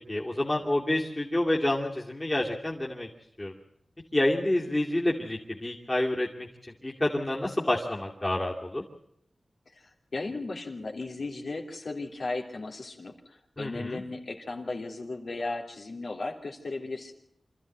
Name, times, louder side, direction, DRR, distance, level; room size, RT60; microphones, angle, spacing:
voice 1, 0.1-3.1 3.4-3.5 4.1-6.5 6.8-8.8 13.6-14.0, left 1 dB, 25° left, -3 dB, 2.7 m, -28 dB
voice 2, 9.7-17.1, left 3 dB, 75° left, 2 dB, 3.3 m, -36 dB
26.5 x 14.0 x 9.1 m, 0.73 s
wide cardioid pair, 80°, 0 cm